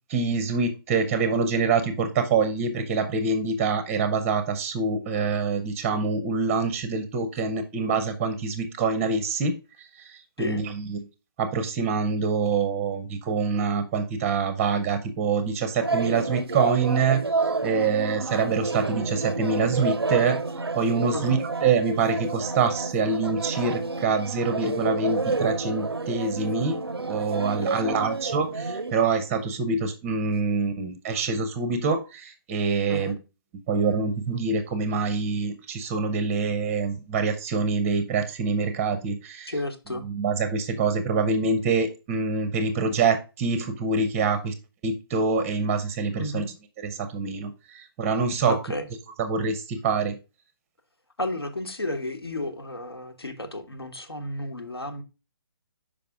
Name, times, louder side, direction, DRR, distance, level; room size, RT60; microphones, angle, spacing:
voice 1, 0.1-9.5 10.4-11.0 11.4-17.2 17.6-20.4 20.8-26.7 27.1-33.1 33.7-39.5 40.0-44.5 44.8-46.4 46.8-48.6 49.2-50.2, right 4 dB, 15° right, 0.6 m, -25 dB
sound 1, 15.8-28.9, right 3 dB, 85° right, 0.5 m, -30 dB
voice 2, 39.5-40.0 46.2-46.5 48.5-48.9 51.2-55.0, left 1 dB, 80° left, 1.2 m, -32 dB
5.8 x 5.1 x 3.4 m
figure-of-eight pair, 140°, 13 cm